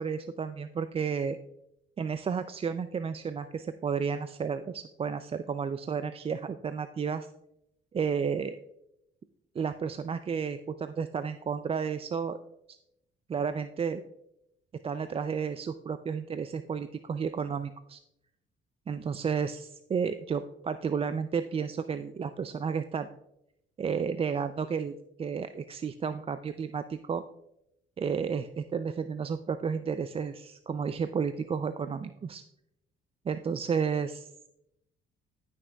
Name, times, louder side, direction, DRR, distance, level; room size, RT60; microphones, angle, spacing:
voice 1, 0.0-1.4 2.0-7.3 7.9-8.6 9.6-12.4 12.7-12.8 13.3-14.0 14.8-18.0 18.9-23.1 23.8-27.2 28.0-32.4 33.3-34.3, right 6 dB, 30° right, 10 dB, 0.3 m, -32 dB
14.0 x 6.2 x 2.3 m, 0.83 s
cardioid pair, 90°, 20 cm